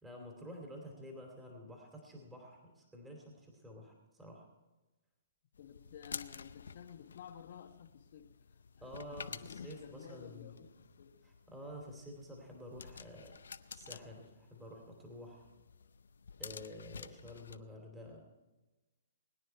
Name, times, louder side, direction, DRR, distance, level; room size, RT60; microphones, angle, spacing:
voice 1, 0.0-4.5 8.8-10.6 11.2-13.3 13.7-15.5 16.4-18.3, equal, 10° right, 2.6 m, -50 dB
sound 1, 5.5-17.6, left 6 dB, 85° left, 0.6 m, -51 dB
voice 2, 5.6-11.2, left 9 dB, 55° left, 1.2 m, -54 dB
21.0 x 9.7 x 4.5 m
hypercardioid pair, 145°, 0 cm